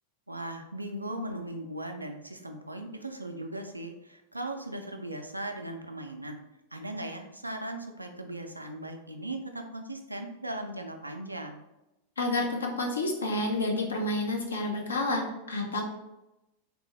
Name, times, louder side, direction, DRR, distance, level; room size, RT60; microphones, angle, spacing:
voice 1, 0.3-6.4 6.7-11.6, right 1 dB, 85° right, 4 dB, 0.4 m, -38 dB
voice 2, 12.2-15.8, left 2 dB, 70° left, 0 dB, 0.7 m, -29 dB
3.3 x 2.5 x 3.0 m, 0.95 s
figure-of-eight pair, 90°, 0 cm